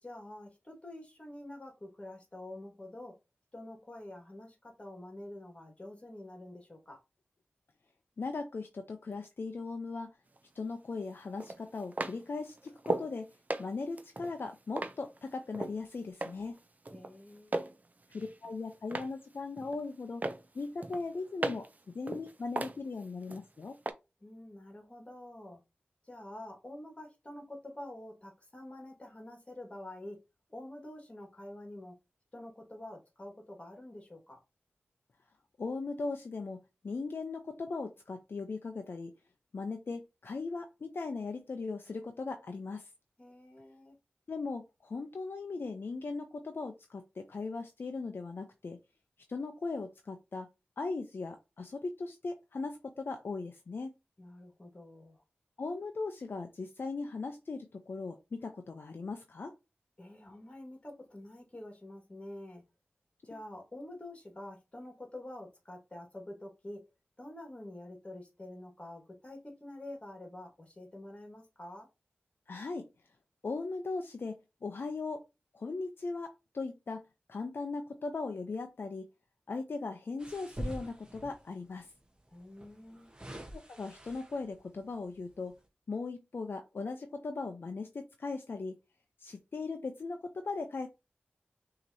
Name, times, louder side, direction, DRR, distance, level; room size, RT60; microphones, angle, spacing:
voice 1, 0.0-3.1 3.5-7.0 16.9-17.7 24.2-25.6 26.0-30.2 30.5-31.9 32.3-34.4 43.2-44.0 54.2-55.2 60.0-62.6 63.2-66.8 67.2-71.9 82.3-83.1, left 1 dB, 30° left, 1.7 m, -47 dB
voice 2, 8.2-10.1 10.5-13.3 13.6-16.6 18.1-20.3 20.5-23.8 35.6-36.6 36.8-39.1 39.5-42.9 44.3-48.8 49.3-50.5 50.8-53.9 55.6-59.5 72.5-72.9 73.4-75.2 75.5-79.1 79.5-81.9 83.5-85.5 85.9-88.7 89.2-90.9, left 3 dB, 65° left, 0.5 m, -38 dB
sound 1, 10.4-10.5 11.4-13.1 13.5-15.8 16.2-16.6 16.8-17.8 18.1-19.2 19.6-19.9 20.2-21.8 22.1-23.4 23.8-23.9, right 2 dB, 40° right, 0.5 m, -36 dB
sound 2, 80.2-81.5 82.5-84.6 85.1-85.3, right 1 dB, 20° right, 1.0 m, -44 dB
5.9 x 2.9 x 2.7 m
wide cardioid pair, 55°, 4 cm